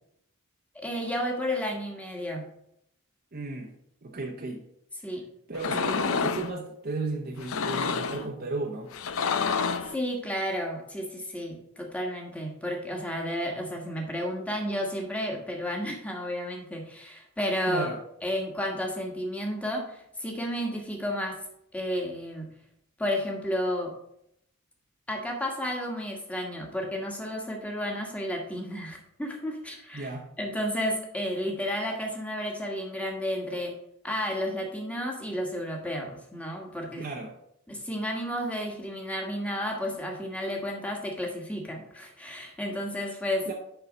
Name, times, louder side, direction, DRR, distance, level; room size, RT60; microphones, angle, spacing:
voice 1, 0.7-2.4 5.0-5.2 9.5-17.9 18.2-21.4 21.7-22.5 23.0-23.9 25.1-30.1 30.4-33.7 34.0-37.0 37.7-43.5, equal, 5° left, 1 dB, 1.3 m, -32 dB
voice 2, 3.3-3.7 4.0-4.6 5.5-8.9 17.7-18.0 29.9-30.3 37.0-37.4 43.5-43.6, right 3 dB, 45° right, 0 dB, 0.8 m, -34 dB
sound 1, 5.5-6.5 7.4-8.3 8.9-9.9, left 5 dB, 70° left, 0.5 m, -28 dB
6.7 x 5.6 x 5.1 m, 0.75 s
head